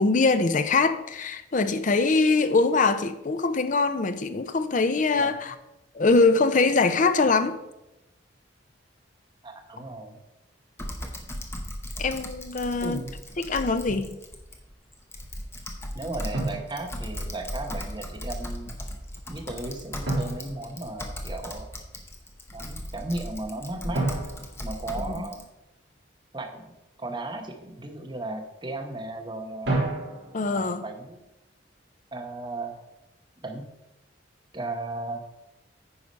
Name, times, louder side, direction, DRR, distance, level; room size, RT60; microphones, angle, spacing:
voice 1, 0.0-5.5 5.9-7.6 12.0-13.0 13.5-14.2 25.1-25.2 30.3-30.8, left 3 dB, 40° left, 0.5 m, -23 dB
voice 2, 5.1-5.5 9.4-10.2 12.8-13.2 15.9-18.8 19.3-21.7 22.5-24.2 24.6-25.4 26.3-26.7 27.0-29.8 30.5-31.2 32.1-32.8 33.4-33.6 34.5-35.2, right 2 dB, 25° right, 1.0 m, -35 dB
Typing, 10.8-25.4, equal, 15° left, 0.9 m, -37 dB
Drum, 13.9-14.2 16.3-17.5 20.0-21.5 23.9-25.6 29.6-30.6, right 2 dB, 60° right, 3.5 m, -32 dB
9.6 x 4.9 x 5.3 m
head